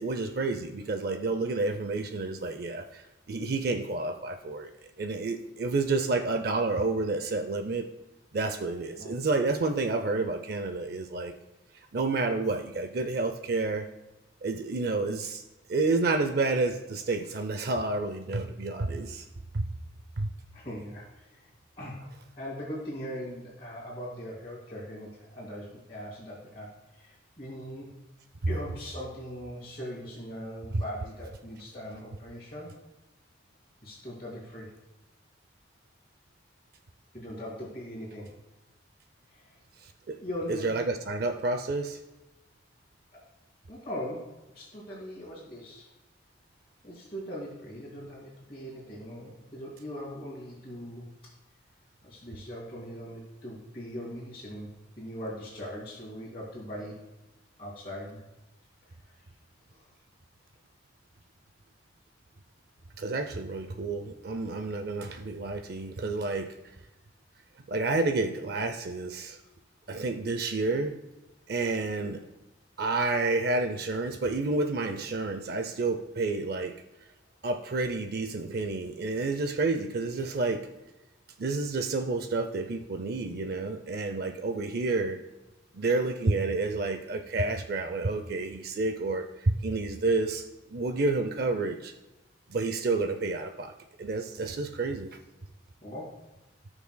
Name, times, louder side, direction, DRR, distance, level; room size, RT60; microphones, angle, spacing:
voice 1, 0.0-4.7 5.0-7.8 8.3-11.3 11.9-13.9 14.4-15.4 15.7-19.3 19.5-19.7 20.2-20.3 39.8-40.2 40.5-42.0 63.0-66.5 67.7-69.4 69.9-70.9 71.5-72.2 72.8-76.7 77.4-80.6 81.4-85.2 85.7-91.9 92.5-93.7 94.0-95.1, right 3 dB, 50° right, 7 dB, 0.5 m, -29 dB
voice 2, 20.5-22.0 22.3-27.9 28.5-32.7 33.8-34.7 37.1-38.3 39.3-39.6 40.2-40.7 43.1-43.2 43.7-44.2 44.5-45.9 46.8-51.1 52.0-54.7 55.0-57.0 57.6-58.2 59.7-59.9 95.8-96.1, equal, 30° left, -9 dB, 2.2 m, -40 dB
17.0 x 5.9 x 2.2 m, 1.0 s
head